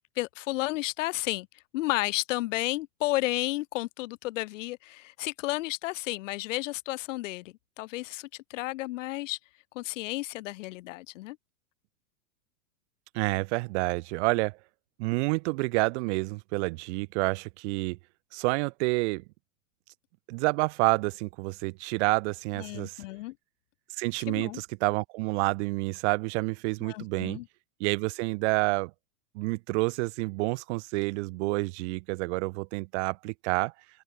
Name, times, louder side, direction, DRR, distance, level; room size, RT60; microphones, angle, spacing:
voice 1, 0.2-9.4 9.7-11.4 22.6-23.3 24.3-24.6 26.8-27.4, left 19 dB, 55° left, 3.1 m, -32 dB
voice 2, 13.1-14.6 15.0-18.0 18.3-19.2 20.3-23.0 24.0-27.4 27.8-28.9 29.3-33.7, right 27 dB, 50° right, 4.6 m, -28 dB
open air
hypercardioid pair, 125°, 43 cm